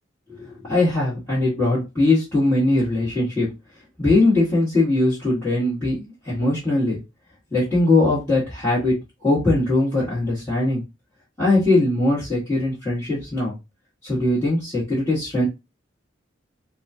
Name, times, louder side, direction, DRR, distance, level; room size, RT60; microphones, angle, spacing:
voice 1, 0.3-3.5 4.0-7.0 7.5-8.9 9.2-10.8 11.4-13.5 14.0-15.5, left 2 dB, 15° left, -12 dB, 1.7 m, -20 dB
4.2 x 2.4 x 2.8 m, 0.25 s
head